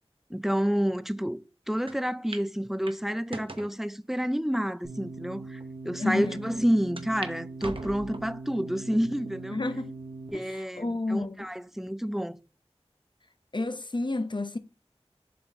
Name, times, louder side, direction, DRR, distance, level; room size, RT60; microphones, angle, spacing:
voice 1, 0.3-9.6 10.3-12.4, equal, 5° right, 0.5 m, -29 dB
sound 1, 1.9-2.0 2.3-2.5 2.9-3.7 4.4-4.5 5.2-5.3 5.6-5.7 7.0-7.3 7.6-8.4 8.9-9.4 9.9-10.0 11.1-11.6, right 2 dB, 55° right, 0.8 m, -41 dB
sound 2, 4.8-10.3, right 3 dB, 75° right, 1.8 m, -41 dB
voice 2, 6.0-6.4 9.5-9.9 10.3-11.5 13.5-14.6, left 2 dB, 45° left, 0.7 m, -30 dB
6.9 x 3.4 x 4.1 m
wide cardioid pair, 45°, 11 cm